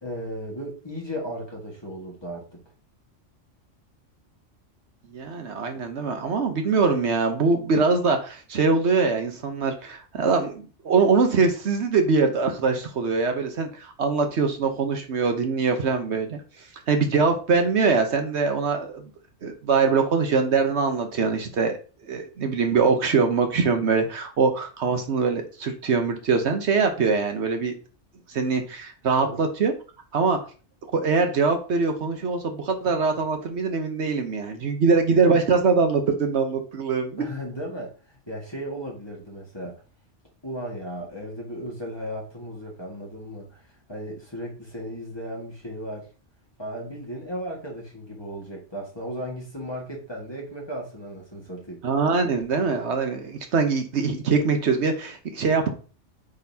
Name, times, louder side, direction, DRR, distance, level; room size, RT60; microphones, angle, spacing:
voice 1, 0.0-2.5 29.2-29.4 37.2-39.8 40.4-43.6 43.9-46.1 46.6-51.8, equal, 20° left, 1.8 m, -35 dB
voice 2, 5.1-16.4 16.9-19.1 19.4-21.8 22.1-27.7 28.3-29.7 30.1-30.4 30.9-37.3 51.8-55.7, right 4 dB, 65° right, 1.1 m, -23 dB
8.4 x 4.1 x 2.8 m
omnidirectional pair, 1.3 m